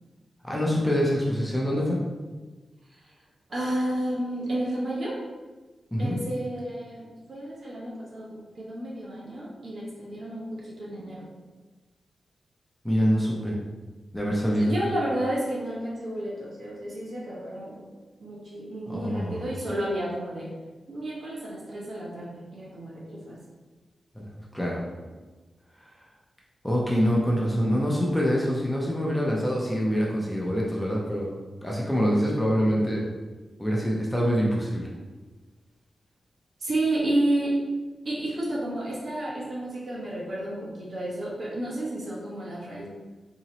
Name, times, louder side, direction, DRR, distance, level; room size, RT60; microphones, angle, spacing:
voice 1, 0.4-2.0 5.9-6.2 12.8-13.6 14.1-14.7 18.9-19.4 24.2-24.3 24.5-24.8 26.6-31.3 31.6-33.0 33.6-34.9, equal, 5° left, -3 dB, 0.5 m, -25 dB
voice 2, 3.5-5.2 6.0-11.3 14.5-17.9 18.2-20.5 20.9-23.4 36.6-37.6 38.0-42.9, right 1 dB, 55° right, -5 dB, 1.1 m, -31 dB
3.8 x 2.9 x 2.9 m, 1.3 s
wide cardioid pair, 140°, 0 cm